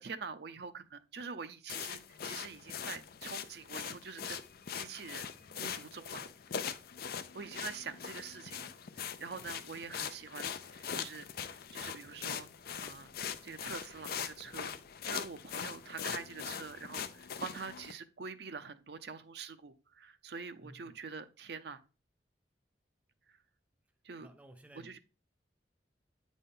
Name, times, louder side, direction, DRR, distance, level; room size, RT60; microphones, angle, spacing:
voice 1, 0.0-4.5 4.8-5.3 5.5-6.3 7.3-12.5 12.8-13.1 13.4-14.7 15.1-21.8 24.0-24.3 24.8-25.0, right 5 dB, 65° right, 0.6 m, -45 dB
sound 1, 1.7-17.9, left 7 dB, 55° left, 0.5 m, -42 dB
voice 2, 20.6-21.1 24.2-25.0, right 1 dB, 10° right, 0.6 m, -55 dB
9.0 x 4.1 x 3.8 m
head